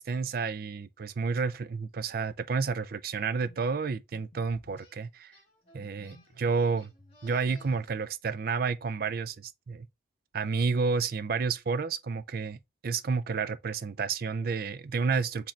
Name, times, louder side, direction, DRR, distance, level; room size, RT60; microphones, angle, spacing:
voice 1, 0.0-5.3 5.7-6.9 7.2-9.9 10.3-15.5, right 5 dB, 50° right, 0.4 m, -30 dB
sound 1, 2.8-3.0 3.4-3.6 4.1-4.9 5.8-6.5 7.0-7.9, left 2 dB, 50° left, 0.8 m, -57 dB
sound 2, 4.8-5.0 5.3-7.9, equal, 30° left, 1.8 m, -57 dB
4.0 x 3.0 x 4.2 m
head